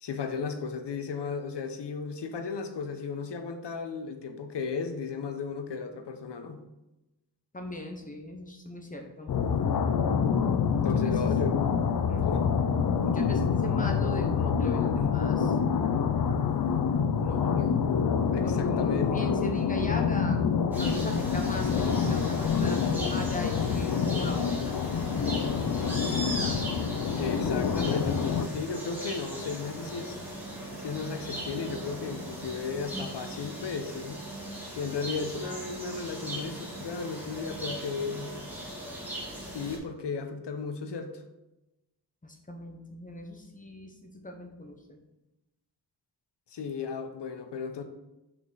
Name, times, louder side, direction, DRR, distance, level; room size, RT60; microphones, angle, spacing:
voice 1, 0.0-6.6 10.8-11.8 12.2-12.5 17.5-17.8 18.3-19.3 27.0-30.2 30.8-34.2 34.7-38.3 39.5-41.2 46.5-47.8, left 5 dB, 80° left, 7 dB, 0.9 m, -35 dB
voice 2, 7.5-9.3 10.7-11.2 12.1-12.3 13.0-15.6 17.2-17.8 18.2-20.4 20.8-22.8 23.1-24.8 42.2-45.0, left 1 dB, 20° left, 3 dB, 0.9 m, -39 dB
sound 1, 9.3-28.5, left 6 dB, 60° left, 0.5 m, -27 dB
sound 2, 20.7-39.8, right 1 dB, 5° right, 1.9 m, -39 dB
6.0 x 5.1 x 4.0 m, 0.96 s
wide cardioid pair, 140°, 41 cm